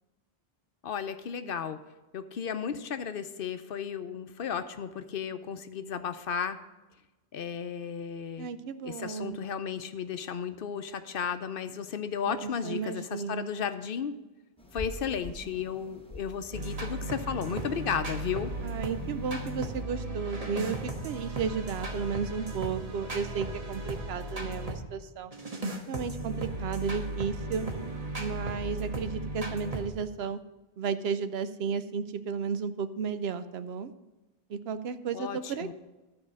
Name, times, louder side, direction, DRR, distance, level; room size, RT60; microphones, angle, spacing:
voice 1, 0.8-1.8 2.1-6.6 7.3-8.5 8.8-14.2 14.7-18.5 35.1-35.7, left 7 dB, 65° left, 10 dB, 0.8 m, -34 dB
voice 2, 8.4-9.4 12.3-13.6 18.6-20.8 21.0-25.3 25.9-27.7 28.2-30.4 30.8-33.9 34.5-35.7, right 6 dB, 80° right, 11 dB, 0.9 m, -33 dB
sound 1, 14.6-19.8, left 1 dB, 5° left, 0.9 m, -46 dB
sound 2, 16.5-24.8 25.3-29.9, right 2 dB, 40° right, 1.3 m, -36 dB
13.0 x 4.7 x 6.3 m, 1.1 s
omnidirectional pair, 1.0 m